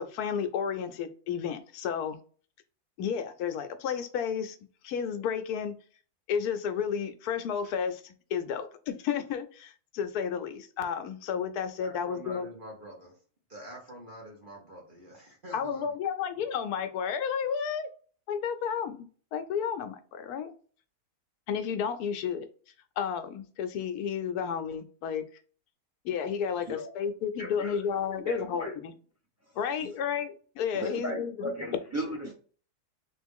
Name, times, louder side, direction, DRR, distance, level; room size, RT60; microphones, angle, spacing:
voice 1, 0.0-2.2 3.0-4.6 4.8-5.8 6.3-12.5 15.5-17.9 18.3-20.5 21.5-22.5 23.0-25.2 26.0-28.9 29.6-31.4 31.6-31.7, left 7 dB, 80° left, 1.1 m, -32 dB
voice 2, 11.8-13.2 13.5-16.0 16.4-16.5, equal, 35° right, 1.2 m, -46 dB
voice 3, 27.4-27.8 28.2-28.7 29.8-29.9 30.7-32.3, equal, 10° right, 1.2 m, -36 dB
3.6 x 3.1 x 3.5 m
omnidirectional pair, 1.6 m